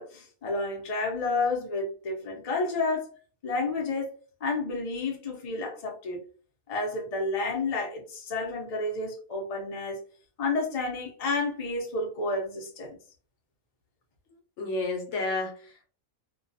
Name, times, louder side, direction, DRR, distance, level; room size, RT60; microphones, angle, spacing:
voice 1, 0.0-3.1 3.4-4.1 4.4-6.2 6.7-10.0 10.4-13.0, left 3 dB, 40° left, 0 dB, 0.5 m, -30 dB
voice 2, 14.6-15.8, left 2 dB, 65° left, 2 dB, 0.9 m, -31 dB
2.2 x 2.2 x 2.6 m, 0.40 s
omnidirectional pair, 1.5 m